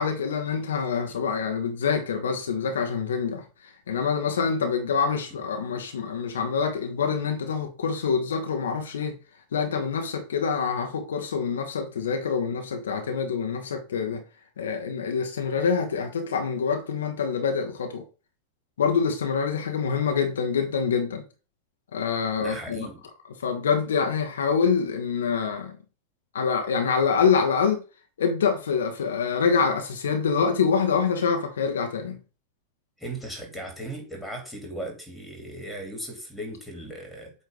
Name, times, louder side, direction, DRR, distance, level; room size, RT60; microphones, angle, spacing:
voice 1, 0.0-9.2 9.5-14.2 14.6-18.0 18.8-21.2 21.9-22.9 23.4-25.8 26.3-27.8 28.2-32.2, left 6 dB, 65° left, 1.1 m, -26 dB
voice 2, 22.4-23.0 33.0-37.3, right 1 dB, ahead, 2.8 m, -37 dB
8.1 x 3.2 x 4.9 m
figure-of-eight pair, 90°, 0 cm